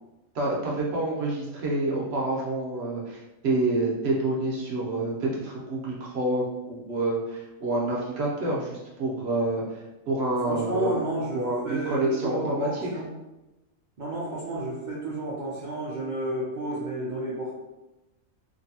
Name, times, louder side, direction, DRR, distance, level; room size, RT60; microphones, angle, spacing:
voice 1, 0.3-11.0 11.3-12.9, right 2 dB, 60° right, -4 dB, 0.8 m, -28 dB
voice 2, 10.5-13.1 14.0-17.6, right 1 dB, 80° right, -5 dB, 0.4 m, -31 dB
2.7 x 2.6 x 2.7 m, 1.0 s
omnidirectional pair, 1.5 m